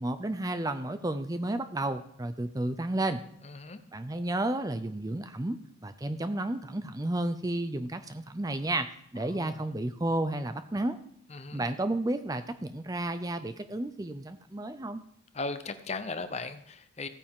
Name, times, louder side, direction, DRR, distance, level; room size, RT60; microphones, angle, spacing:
voice 1, 0.0-3.2 3.9-11.0 11.5-15.0, right 1 dB, 15° right, 10 dB, 0.5 m, -32 dB
voice 2, 3.4-3.8 9.2-9.6 11.3-11.7 15.3-17.1, left 3 dB, 30° left, 10 dB, 0.7 m, -37 dB
15.5 x 9.4 x 3.7 m, 0.70 s
head